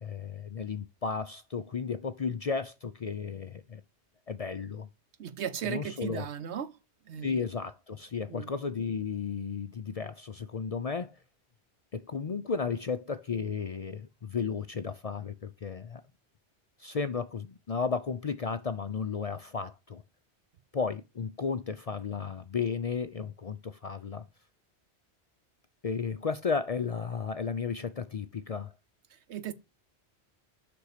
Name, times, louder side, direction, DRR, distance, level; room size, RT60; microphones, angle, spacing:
voice 1, 0.0-3.8 4.3-4.9 5.7-6.3 7.2-11.2 11.9-16.0 16.8-20.0 20.7-24.3 25.8-28.7, left 5 dB, 50° left, 0.5 m, -34 dB
voice 2, 5.2-6.8 7.1-7.4 8.3-8.5 29.1-29.5, right 9 dB, 85° right, 1.1 m, -36 dB
6.7 x 6.1 x 4.9 m
omnidirectional pair, 1.1 m